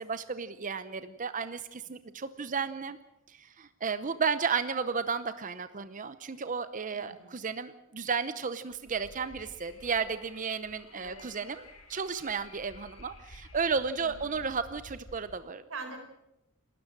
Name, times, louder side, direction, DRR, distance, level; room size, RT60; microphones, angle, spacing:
voice 1, 0.0-3.0 3.3-15.6, right 5 dB, 40° right, 12 dB, 0.7 m, -33 dB
voice 2, 6.9-7.4 10.9-11.2 14.0-14.4 15.7-16.0, right 3 dB, 70° right, 5 dB, 5.1 m, -44 dB
Wind, 8.7-15.3, left 1 dB, 90° left, 6.5 m, -53 dB
29.0 x 13.0 x 7.4 m, 0.89 s
head